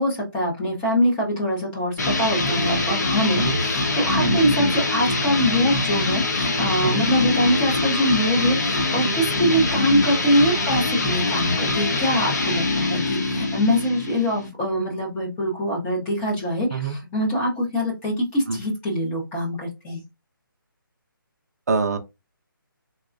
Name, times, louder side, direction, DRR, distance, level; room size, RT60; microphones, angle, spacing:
voice 1, 0.0-20.0, equal, 10° left, 0.7 m, -23 dB
sound 1, 2.0-14.5, left 2 dB, 50° left, 0.9 m, -24 dB
voice 2, 21.7-22.0, right 4 dB, 45° right, 0.6 m, -25 dB
4.1 x 2.2 x 2.4 m
figure-of-eight pair, 160°, 12 cm